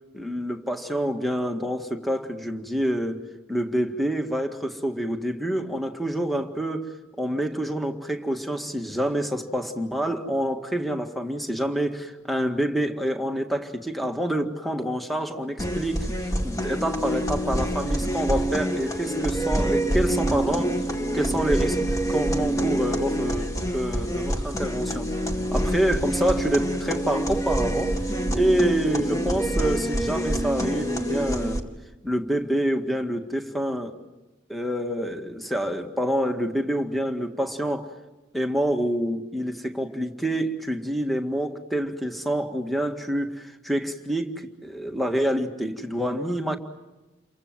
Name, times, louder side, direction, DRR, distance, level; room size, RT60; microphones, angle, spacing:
voice 1, 0.1-3.2 3.5-6.9 7.2-16.1 16.4-20.7 21.1-21.8 22.1-25.1 25.5-27.9 28.3-31.7 32.0-33.9 34.5-37.9 38.3-46.6, right 1 dB, ahead, 5 dB, 1.8 m, -27 dB
sound 1, 15.6-31.6, right 1 dB, 15° left, 2.1 m, -26 dB
29.0 x 23.5 x 7.5 m, 1.1 s
head